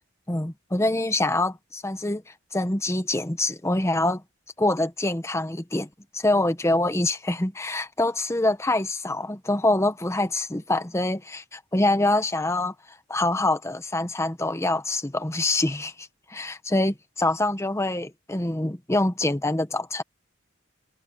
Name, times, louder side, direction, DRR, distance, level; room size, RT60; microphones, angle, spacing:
voice 1, 0.3-2.2 2.5-4.2 4.6-5.9 6.1-12.7 13.1-20.0, left 2 dB, 15° left, 1.0 m, -25 dB
head